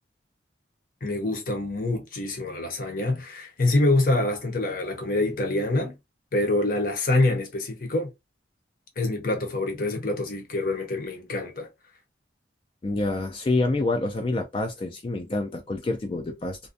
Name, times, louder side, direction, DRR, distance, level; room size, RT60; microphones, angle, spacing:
voice 1, 1.0-6.0 6.3-8.1 9.0-11.7, left 2 dB, 50° left, 0.7 m, -25 dB
voice 2, 12.8-16.6, left 2 dB, 30° left, 0.3 m, -27 dB
2.5 x 2.1 x 2.5 m
head